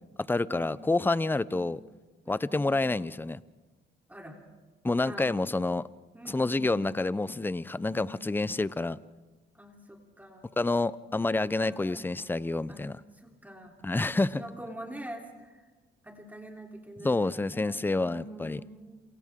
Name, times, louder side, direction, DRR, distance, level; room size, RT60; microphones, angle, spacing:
voice 1, 0.3-1.8 2.3-3.4 4.8-5.8 6.3-9.0 10.6-12.9 13.8-14.4 17.0-18.6, left 2 dB, 10° left, 18 dB, 0.6 m, -28 dB
voice 2, 2.3-2.7 4.1-4.4 5.0-5.4 6.1-6.9 7.9-8.1 9.5-10.5 11.6-12.1 12.7-12.9 13.1-13.8 14.1-15.6 16.0-19.0, right 1 dB, 10° right, 1 dB, 3.4 m, -46 dB
28.5 x 28.0 x 3.7 m, 1.3 s
cardioid pair, 90°, 20 cm